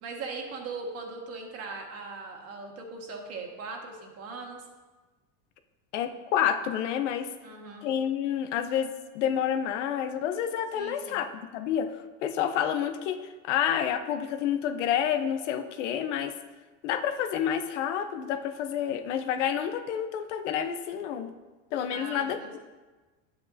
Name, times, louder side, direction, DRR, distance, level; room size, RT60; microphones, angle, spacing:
voice 1, 0.0-4.6 7.4-7.9 10.7-11.2 21.9-22.6, right 3 dB, 45° right, 1 dB, 1.7 m, -39 dB
voice 2, 5.9-7.3 7.8-11.3 11.5-11.9 12.2-13.2 13.4-16.3 16.8-21.3 21.7-22.4, left 9 dB, 90° left, 8 dB, 0.8 m, -29 dB
9.7 x 8.0 x 2.7 m, 1.2 s
supercardioid pair, 125°, 35 cm